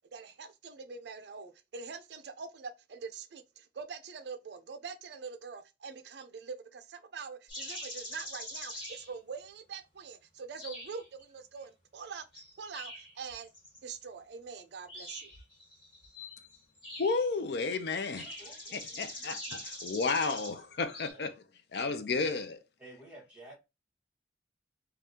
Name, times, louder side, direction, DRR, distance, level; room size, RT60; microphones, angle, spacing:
voice 1, 0.1-12.2 12.6-13.5 13.8-15.3, right 5 dB, 65° right, 0.4 m, -44 dB
sound 1, 7.5-9.2 10.6-11.2 12.3-14.0 14.9-17.4 18.1-20.6 20.9-21.1, left 1 dB, 25° left, 1.5 m, -44 dB
voice 2, 17.0-18.3 18.7-21.3 21.7-22.6, left 4 dB, 65° left, 0.5 m, -32 dB
voice 3, 18.2-19.4 21.1-21.3 22.8-23.6, right 1 dB, 5° right, 1.3 m, -53 dB
3.5 x 2.3 x 2.6 m
head